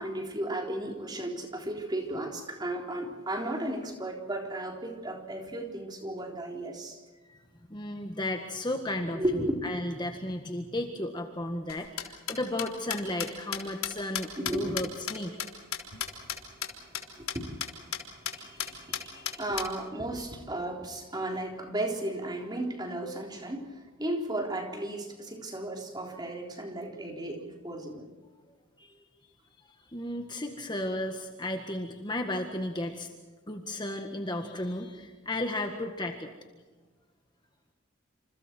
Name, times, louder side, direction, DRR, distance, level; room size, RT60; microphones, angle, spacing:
voice 1, 0.0-7.0 9.1-9.5 14.4-14.8 16.9-17.6 18.7-19.0 19.3-28.1 30.4-30.5, right 1 dB, 20° right, 2 dB, 3.7 m, -34 dB
voice 2, 7.7-15.4 16.1-16.3 18.3-19.4 28.8-29.0 29.9-33.1 33.5-36.3, left 1 dB, 20° left, 4 dB, 1.7 m, -34 dB
sound 1, 11.7-16.4 16.6-16.7 16.9-17.0 17.3-17.4 17.6-18.0 18.3-18.4 18.6-19.7, left 9 dB, 85° left, 3.6 m, -33 dB
28.5 x 28.0 x 4.6 m, 1.3 s
head